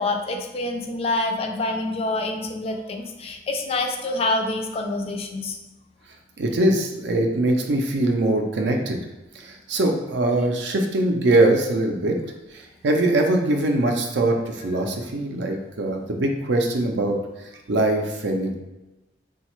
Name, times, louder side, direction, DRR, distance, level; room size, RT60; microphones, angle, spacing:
voice 1, 0.0-5.6, left 2 dB, 35° left, 3 dB, 0.3 m, -26 dB
voice 2, 6.4-9.0 9.3-12.2 12.5-17.2 17.7-18.5, right 1 dB, 70° right, 3 dB, 0.5 m, -22 dB
3.2 x 2.3 x 3.0 m, 1.0 s
head